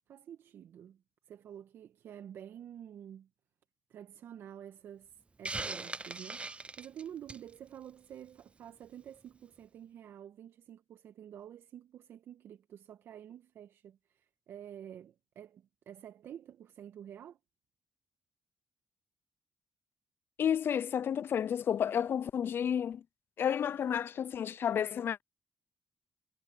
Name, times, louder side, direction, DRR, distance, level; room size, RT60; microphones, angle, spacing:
voice 1, 0.1-1.0 1.3-3.3 3.9-17.4, right 10 dB, 70° right, 1.7 m, -49 dB
Hiss, 5.4-7.5, right 3 dB, 30° right, 0.6 m, -39 dB
voice 2, 20.4-23.0 23.4-25.2, left 8 dB, 60° left, 0.6 m, -31 dB
hypercardioid pair, 45°, 4 cm